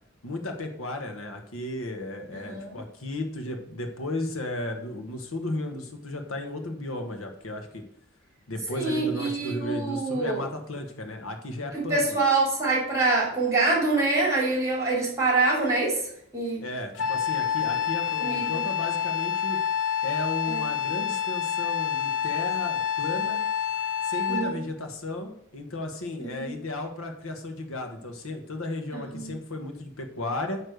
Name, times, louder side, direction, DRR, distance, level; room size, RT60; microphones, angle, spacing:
voice 1, 0.2-7.8 8.5-12.2 16.6-19.6 20.0-23.4 24.0-30.6, left 2 dB, 85° left, 5 dB, 1.2 m, -34 dB
voice 2, 2.4-2.8 8.7-10.4 11.7-16.0 16.3-16.6 18.2-18.6 20.5-20.6 24.3-24.6 26.3-26.5 29.1-29.3, right 3 dB, 15° right, -3 dB, 2.8 m, -25 dB
Wind instrument woodwind instrument, 17.0-24.6, left 8 dB, 60° left, 0.9 m, -28 dB
9.3 x 3.2 x 6.4 m, 0.71 s
head